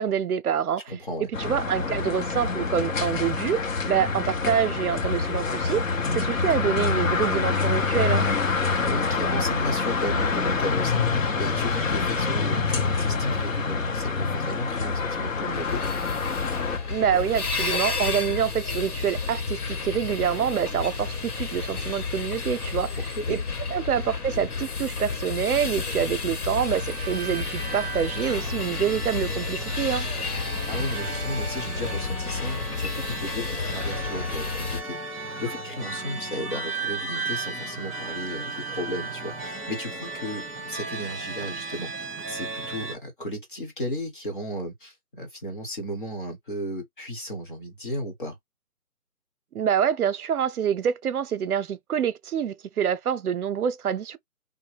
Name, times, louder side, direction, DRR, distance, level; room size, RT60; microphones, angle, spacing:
voice 1, 0.0-0.8 1.4-5.9 6.1-8.3 16.9-23.0 23.3-23.4 23.7-30.1 49.5-54.2, right 8 dB, 75° right, 0.6 m, -26 dB
voice 2, 0.9-1.3 8.8-15.8 23.2-23.4 30.6-35.0 35.4-48.4, equal, 35° left, 1.1 m, -34 dB
sound 1, 1.3-16.8, left 4 dB, 60° left, 0.8 m, -26 dB
sound 2, 15.5-34.8, left 4 dB, 80° left, 1.2 m, -31 dB
sound 3, 26.2-43.0, right 3 dB, ahead, 0.4 m, -35 dB
3.1 x 2.2 x 3.2 m
hypercardioid pair, 170°, 45 cm